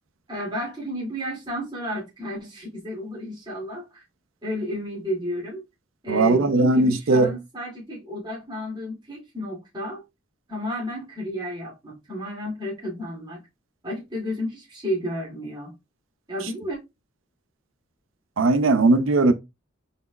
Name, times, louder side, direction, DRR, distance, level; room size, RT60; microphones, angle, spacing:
voice 1, 0.3-4.0 4.4-5.6 6.0-10.0 10.5-13.4 13.8-15.7 16.3-16.8, equal, 25° right, 2.3 m, -32 dB
voice 2, 6.1-7.3 18.4-19.3, right 2 dB, 85° right, 0.6 m, -18 dB
4.3 x 4.0 x 2.3 m
head